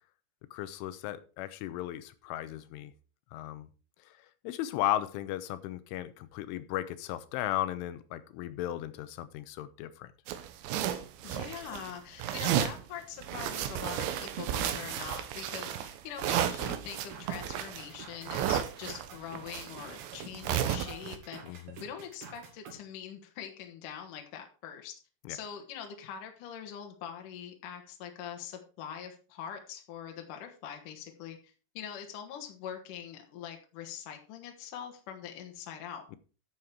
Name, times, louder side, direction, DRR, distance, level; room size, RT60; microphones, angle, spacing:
voice 1, 0.5-2.9 3.3-3.7 4.4-10.1 21.4-21.8 25.3-25.4, left 13 dB, 85° left, 3.3 m, -35 dB
sound 1, 10.3-11.9 12.2-12.8 13.2-21.2, right 10 dB, 75° right, 3.2 m, -33 dB
voice 2, 11.2-24.9 25.3-31.4 31.7-36.0, left 9 dB, 60° left, 2.3 m, -43 dB
sound 2, 16.9-22.7, right 5 dB, 60° right, 3.7 m, -49 dB
11.5 x 7.5 x 4.7 m
omnidirectional pair, 5.5 m